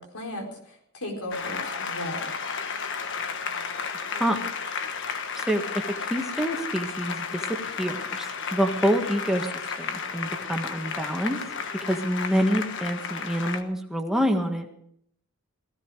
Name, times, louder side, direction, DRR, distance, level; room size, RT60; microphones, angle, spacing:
voice 1, 0.0-2.3, left 1 dB, 85° left, 3 dB, 4.4 m, -36 dB
Applause, 1.3-13.6, left 6 dB, 55° left, 1.4 m, -33 dB
voice 2, 5.5-8.3 8.5-9.5 9.7-11.4 11.8-14.7, equal, ahead, 2 dB, 1.7 m, -27 dB
18.0 x 16.0 x 4.9 m, 0.71 s
head